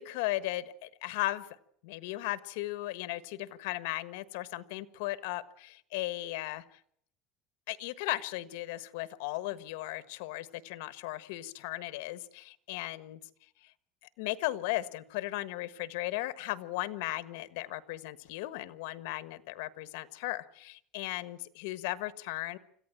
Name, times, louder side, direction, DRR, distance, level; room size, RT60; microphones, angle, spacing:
voice 1, 0.0-1.5 1.8-6.6 7.7-13.2 13.6-13.7 14.2-22.6, left 17 dB, 85° left, 15 dB, 1.3 m, -36 dB
26.5 x 15.0 x 8.9 m, 0.67 s
cardioid pair, 150°, 0 cm